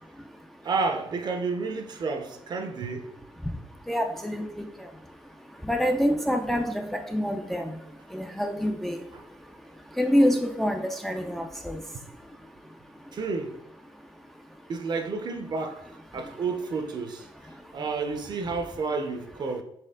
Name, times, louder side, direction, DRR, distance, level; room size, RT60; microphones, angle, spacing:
voice 1, 0.6-3.1 9.1-9.2 13.1-13.6 14.7-19.6, right 4 dB, 45° right, 0.7 m, -31 dB
voice 2, 3.9-4.5 5.7-7.7 8.1-9.0 10.0-11.8, equal, 5° left, 0.4 m, -26 dB
4.3 x 3.0 x 3.7 m
cardioid pair, 100°, 10 cm